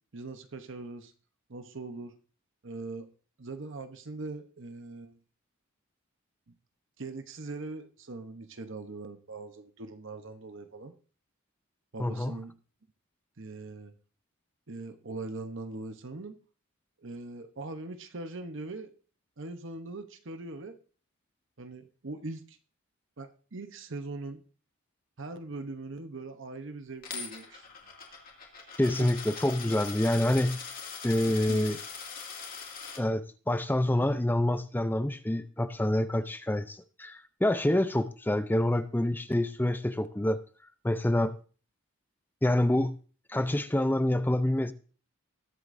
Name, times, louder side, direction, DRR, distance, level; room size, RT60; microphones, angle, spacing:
voice 1, 0.1-1.1 1.5-2.1 2.6-3.1 3.4-5.2 7.0-10.9 11.9-12.5 13.4-13.9 14.7-16.4 17.0-18.9 19.4-20.8 21.6-22.6 23.2-24.4 25.2-27.6 29.0-29.1 29.6-29.7 31.2-31.8, right 3 dB, 60° right, 0.9 m, -41 dB
voice 2, 12.0-12.4 28.8-30.6 31.0-31.8 33.0-40.4 40.8-41.4 42.4-43.0 43.3-44.7, left 1 dB, 10° left, 0.5 m, -27 dB
Coin (dropping), 27.0-33.0, left 5 dB, 45° left, 2.4 m, -41 dB
20.5 x 8.1 x 2.6 m
head